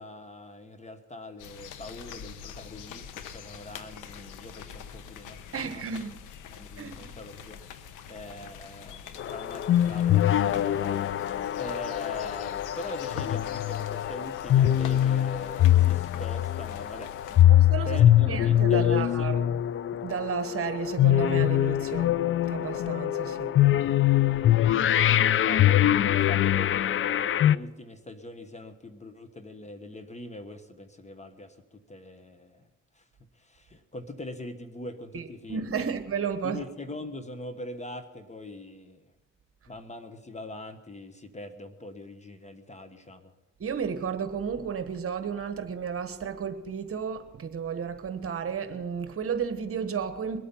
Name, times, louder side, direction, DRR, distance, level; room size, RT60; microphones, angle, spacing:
voice 1, 0.0-6.0 6.5-17.5 17.8-19.3 24.9-33.1 33.3-36.0 36.4-39.1 39.7-43.3, left 1 dB, 25° left, 1.3 m, -42 dB
sound 1, 1.4-17.4, left 8 dB, 90° left, 1.0 m, -44 dB
voice 2, 5.5-6.2 6.8-7.1 17.5-19.6 20.0-22.1 22.5-23.5 35.1-36.6 43.6-50.4, right 6 dB, 50° right, 1.3 m, -33 dB
sound 2, 9.2-27.6, left 12 dB, 45° left, 0.4 m, -23 dB
22.0 x 8.6 x 5.6 m
cardioid pair, 90°, 30 cm